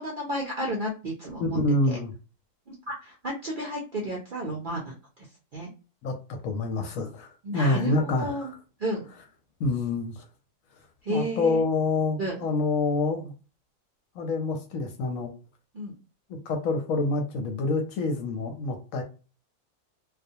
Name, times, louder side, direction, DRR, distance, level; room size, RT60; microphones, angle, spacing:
voice 1, 0.0-1.6 1.9-2.0 2.7-4.9 5.5-5.7 7.4-8.5 8.8-9.1 11.0-11.6 12.2-12.5 15.7-15.9, right 1 dB, 60° right, -2 dB, 0.5 m, -32 dB
voice 2, 1.4-2.1 6.0-7.3 7.5-8.5 9.6-10.2 11.1-13.3 14.2-15.3 16.3-19.0, left 3 dB, 70° left, 4 dB, 0.9 m, -27 dB
2.4 x 2.2 x 2.7 m, 0.34 s
omnidirectional pair, 1.6 m